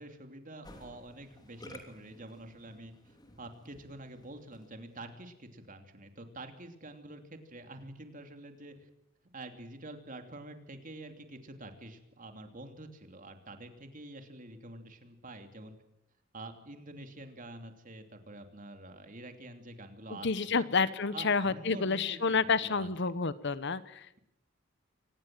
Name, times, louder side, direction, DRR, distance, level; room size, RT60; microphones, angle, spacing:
voice 1, 0.0-8.9 9.3-15.8 16.3-20.6 21.1-22.9, right 2 dB, 40° right, 6 dB, 3.0 m, -47 dB
Musical instrument, 0.6-4.9, left 1 dB, 20° left, 3.1 m, -54 dB
voice 2, 20.2-24.1, left 4 dB, 60° left, 16 dB, 1.0 m, -29 dB
25.5 x 19.5 x 7.7 m, 0.80 s
head